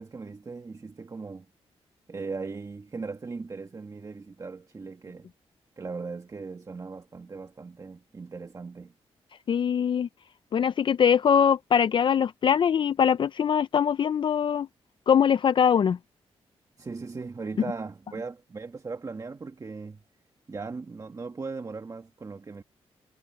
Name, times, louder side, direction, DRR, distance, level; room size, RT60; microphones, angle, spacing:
voice 1, 0.0-1.5 2.1-5.3 5.8-8.9 16.8-20.0 20.5-22.6, right 4 dB, 35° right, 1.7 m, -38 dB
voice 2, 9.5-10.1 10.5-14.7 15.1-16.0, left 8 dB, 50° left, 0.4 m, -22 dB
cardioid pair, 100°, 11 cm